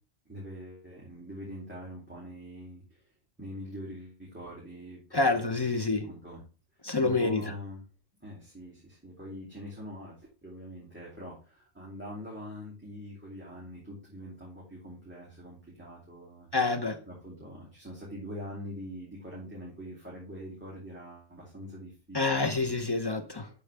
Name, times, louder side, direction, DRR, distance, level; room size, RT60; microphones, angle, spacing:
voice 1, 0.3-3.1 3.4-5.8 6.1-6.4 6.8-7.8 8.2-16.5 17.1-22.7, equal, 10° right, 2.8 m, -44 dB
voice 2, 5.1-6.1 6.8-7.4 16.5-17.0 22.1-23.5, left 3 dB, 25° left, 0.6 m, -27 dB
11.5 x 4.9 x 3.4 m
omnidirectional pair, 1.3 m